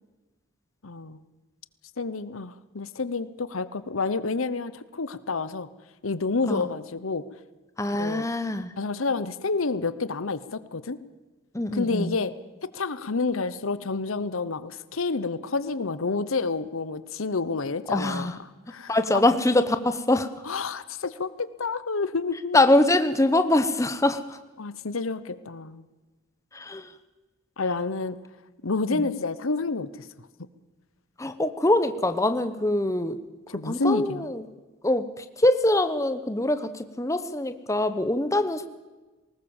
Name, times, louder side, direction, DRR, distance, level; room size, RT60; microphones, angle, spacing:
voice 1, 0.8-1.2 2.0-5.7 6.0-7.2 7.9-8.3 8.8-11.0 11.7-12.3 12.6-19.3 20.4-22.6 24.6-25.8 27.6-28.2 28.6-30.1 33.5-34.3, left 4 dB, 80° left, 15 dB, 1.0 m, -29 dB
voice 2, 7.8-8.7 11.5-12.1 17.9-18.4 18.9-20.3 22.5-24.4 26.5-26.9 28.9-29.1 31.2-33.2 33.6-34.4 34.8-38.7, left 1 dB, 15° left, 10 dB, 0.9 m, -23 dB
20.0 x 19.0 x 7.2 m, 1.2 s
head